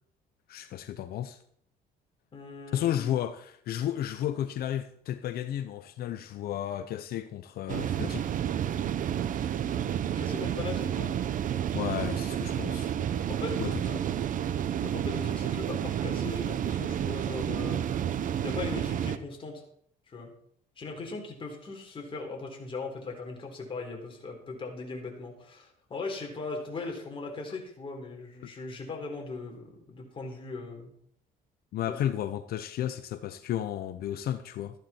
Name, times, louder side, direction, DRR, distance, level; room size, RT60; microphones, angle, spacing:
voice 1, 0.5-1.4 2.7-8.3 11.7-12.9 13.6-13.7 31.7-34.9, left 11 dB, 65° left, 0.7 m, -33 dB
voice 2, 2.3-3.1 10.2-11.2 13.3-14.0 14.8-17.9 18.4-19.6 20.1-20.3 20.8-30.9 31.9-32.0, left 3 dB, 30° left, 4.0 m, -39 dB
sound 1, 7.7-19.2, right 9 dB, 50° right, 0.8 m, -30 dB
13.5 x 10.5 x 4.5 m
cardioid pair, 110°, 17 cm